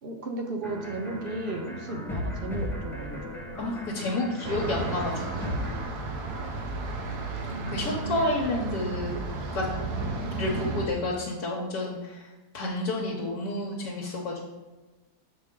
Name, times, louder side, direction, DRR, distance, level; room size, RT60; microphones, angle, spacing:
voice 1, 0.0-3.4 7.5-8.7, right 2 dB, 50° right, 3 dB, 0.7 m, -35 dB
sound 1, 0.6-5.8, left 1 dB, ahead, 0.6 m, -36 dB
voice 2, 3.6-5.4 7.7-9.2 9.5-9.6 10.1-14.4, left 2 dB, 75° left, -3 dB, 1.4 m, -30 dB
sound 2, 4.4-10.9, right 3 dB, 75° right, 1.4 m, -33 dB
6.7 x 5.2 x 3.7 m, 1.2 s
omnidirectional pair, 1.7 m